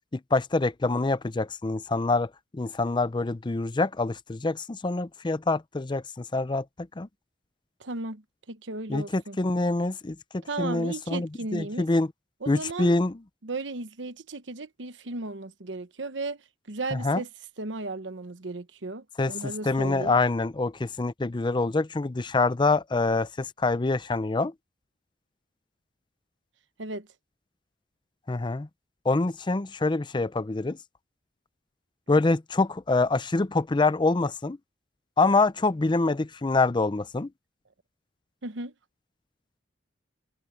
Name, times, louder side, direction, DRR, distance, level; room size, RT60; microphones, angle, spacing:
voice 1, 0.1-7.1 8.9-12.1 12.5-13.2 16.9-17.2 19.2-19.3 19.6-24.5 28.3-28.7 29.1-30.8 32.1-34.6 35.2-37.3, left 3 dB, 25° left, 0.5 m, -26 dB
voice 2, 7.8-9.4 10.5-11.9 12.4-13.0 13.4-16.4 16.7-17.3 17.6-20.2 26.8-27.1 38.4-38.7, right 2 dB, 75° right, 1.1 m, -35 dB
head